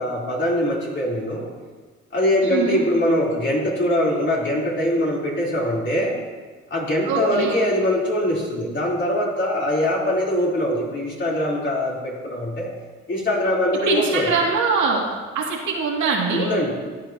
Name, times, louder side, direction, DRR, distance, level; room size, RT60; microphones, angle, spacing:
voice 1, 0.0-1.5 2.1-6.2 6.7-12.7 13.1-14.3 16.3-16.7, left 1 dB, 40° left, -4 dB, 3.6 m, -22 dB
voice 2, 2.4-2.9 7.0-7.6 13.8-15.0 15.3-16.5, right 4 dB, 75° right, -3 dB, 2.6 m, -23 dB
14.5 x 10.0 x 2.9 m, 1.4 s
cardioid pair, 90°, 30 cm